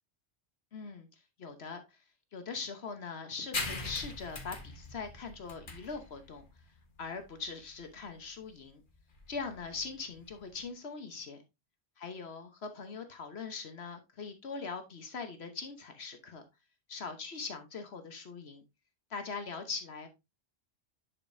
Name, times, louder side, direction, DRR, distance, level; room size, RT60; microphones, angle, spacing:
voice 1, 0.7-1.1 1.4-2.0 2.3-6.4 7.0-8.8 9.3-11.4 12.0-16.4 16.9-18.6 19.1-20.1, left 4 dB, 70° left, 1.3 m, -41 dB
sound 1, 3.5-10.7, left 3 dB, 50° left, 1.6 m, -42 dB
10.5 x 5.1 x 2.6 m
omnidirectional pair, 1.1 m